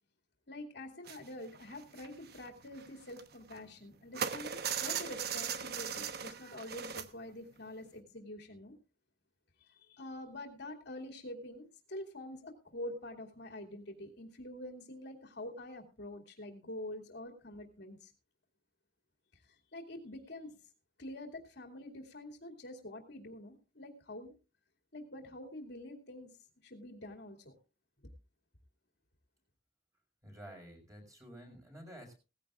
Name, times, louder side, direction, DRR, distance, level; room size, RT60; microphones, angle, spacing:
voice 1, 0.5-8.7 9.6-18.1 19.3-20.7 21.0-24.3 24.9-26.3 26.6-27.5, left 1 dB, 65° left, 3 dB, 2.5 m, -46 dB
sound 1, 1.1-1.3 1.5-3.8 4.1-7.1 7.5-7.7 8.0-8.1, right 7 dB, 55° right, 1.0 m, -39 dB
voice 2, 30.2-32.2, equal, 20° right, 2 dB, 5.2 m, -51 dB
18.5 x 15.0 x 2.4 m, 0.31 s
head